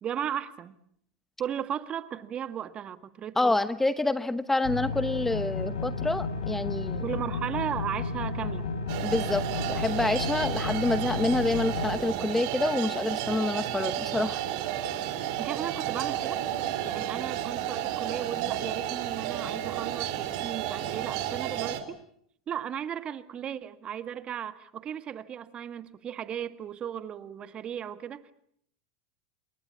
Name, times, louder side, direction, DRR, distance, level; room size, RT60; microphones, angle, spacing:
voice 1, 0.0-0.8 1.4-3.6 7.0-8.6 15.4-16.4 16.8-22.0 22.5-28.3, right 9 dB, 35° right, 1.7 m, -36 dB
voice 2, 3.4-7.1 9.0-9.4 9.7-14.4, left 2 dB, 10° left, 1.0 m, -27 dB
sound 1, 4.6-12.0, left 4 dB, 80° left, 4.8 m, -32 dB
sound 2, 8.9-21.8, right 11 dB, 60° right, 3.2 m, -32 dB
27.5 x 21.5 x 8.5 m
hypercardioid pair, 100°, 3 cm